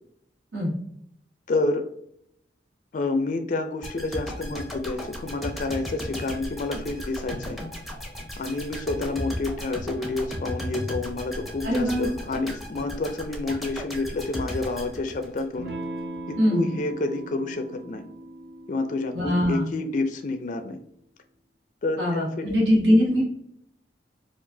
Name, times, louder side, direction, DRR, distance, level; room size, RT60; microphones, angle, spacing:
voice 1, 1.5-1.8 2.9-7.6 8.4-15.7 16.3-18.1 18.7-20.8 21.8-22.6, left 2 dB, 45° left, 7 dB, 0.4 m, -29 dB
sound 1, 3.8-15.8 16.2-16.3, equal, ahead, 0.6 m, -35 dB
voice 2, 11.6-12.1 16.4-16.7 19.1-19.6 22.0-23.3, equal, 90° right, -5 dB, 1.3 m, -22 dB
Electric guitar / Strum, 15.6-20.7, right 2 dB, 70° right, 0.8 m, -40 dB
4.5 x 2.4 x 2.6 m, 0.71 s
head